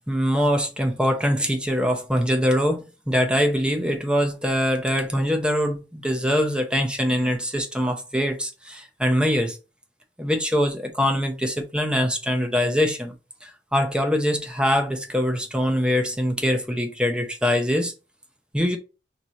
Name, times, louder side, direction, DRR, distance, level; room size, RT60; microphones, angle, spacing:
voice 1, 0.1-9.6 10.2-13.1 13.4-17.9 18.5-18.8, equal, 5° right, 0.7 m, -23 dB
5.9 x 2.8 x 3.0 m
head